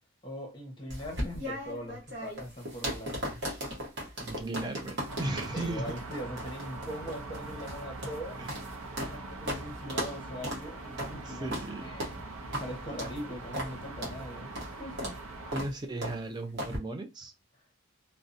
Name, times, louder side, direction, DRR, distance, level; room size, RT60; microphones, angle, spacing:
voice 1, 0.2-3.4 5.5-8.5 9.0-12.1 12.6-15.2, equal, 25° left, 0.8 m, -41 dB
sound 1, 0.9-9.2 9.5-9.6 9.9-10.2 10.4-10.6 11.0-11.1 11.5-11.7 12.0-12.2 12.5-12.7 13.0-13.2 13.5-13.7 14.0-14.2 14.6-14.7 15.0-15.2 15.5-15.7 16.0-16.2 16.6-16.8, equal, 55° right, 0.9 m, -36 dB
voice 2, 4.2-5.9 8.4-8.5 11.3-11.9 15.5-17.3, right 2 dB, 20° right, 0.3 m, -36 dB
sound 2, 5.1-15.6, right 2 dB, 85° right, 0.5 m, -42 dB
2.6 x 2.1 x 2.4 m
head